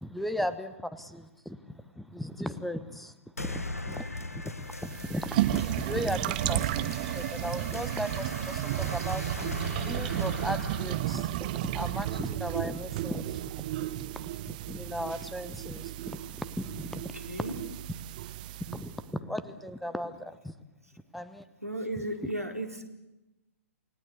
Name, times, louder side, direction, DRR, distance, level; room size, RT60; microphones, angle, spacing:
voice 1, 0.0-3.1 3.4-9.6 9.8-17.2 18.7-20.5 21.1-21.4, equal, ahead, 14 dB, 1.1 m, -37 dB
sound 1, 3.4-12.4, left 2 dB, 80° left, 1.1 m, -40 dB
sound 2, 4.7-19.0, right 14 dB, 35° right, 0.9 m, -33 dB
voice 2, 21.6-22.7, right 1 dB, 90° right, 4 dB, 3.9 m, -34 dB
29.0 x 18.5 x 8.4 m, 0.99 s
figure-of-eight pair, 120°, 8 cm